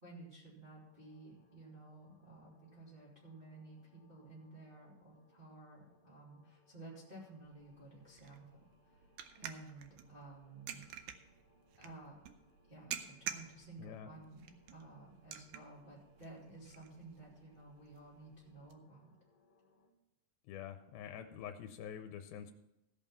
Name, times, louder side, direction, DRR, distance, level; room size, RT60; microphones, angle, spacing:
voice 1, 0.0-8.4 8.8-9.0 9.3-10.9 11.8-12.2 12.7-19.2, right 2 dB, 15° right, -7 dB, 2.5 m, -54 dB
sound 1, 0.7-19.9, left 2 dB, 30° left, 2.4 m, -72 dB
sound 2, 7.4-18.7, right 10 dB, 80° right, 1.8 m, -50 dB
voice 2, 13.8-14.1 20.4-22.5, left 9 dB, 85° left, 7 dB, 2.5 m, -46 dB
16.0 x 5.5 x 5.8 m, 0.88 s
omnidirectional pair, 4.2 m